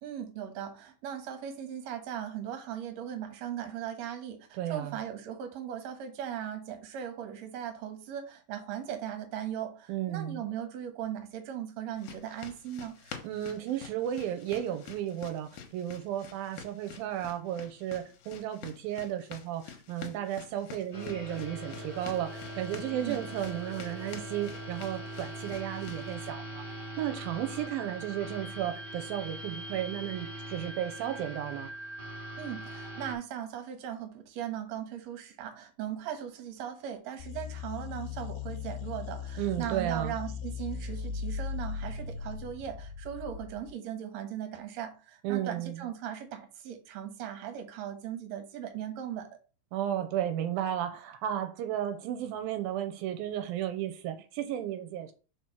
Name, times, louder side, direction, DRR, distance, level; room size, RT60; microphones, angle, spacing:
voice 1, 0.0-13.0 22.9-23.2 32.4-49.3, right 10 dB, 60° right, 2.1 m, -38 dB
voice 2, 4.6-5.0 9.9-10.4 13.2-31.7 39.4-40.1 45.2-45.8 49.7-55.1, right 11 dB, 85° right, 2.5 m, -34 dB
sound 1, 12.0-26.2, left 7 dB, 65° left, 2.1 m, -48 dB
sound 2, 20.9-33.1, right 1 dB, 20° left, 1.5 m, -41 dB
sound 3, 37.2-43.7, left 6 dB, 80° left, 2.6 m, -38 dB
4.9 x 4.7 x 5.9 m
omnidirectional pair, 4.3 m